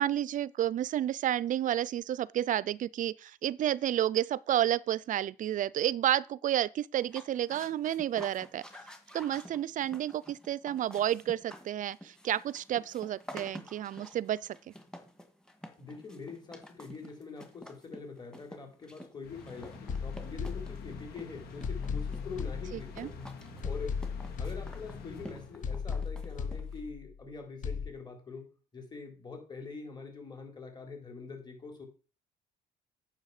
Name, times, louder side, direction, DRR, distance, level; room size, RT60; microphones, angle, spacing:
voice 1, 0.0-8.6 9.1-14.6 22.7-23.1, right 11 dB, 50° right, 0.5 m, -31 dB
sound 1, 7.0-26.9, equal, 5° left, 1.9 m, -50 dB
voice 2, 15.8-23.2 23.6-24.1 24.4-28.5 28.7-31.8, left 4 dB, 25° left, 3.9 m, -44 dB
sound 2, 19.2-25.9, left 4 dB, 70° left, 2.3 m, -47 dB
sound 3, 19.9-21.2 21.6-23.2 23.6-25.2 25.6-27.2 27.6-27.9, left 5 dB, 50° left, 1.3 m, -37 dB
9.3 x 7.0 x 4.9 m
cardioid pair, 110°, 17 cm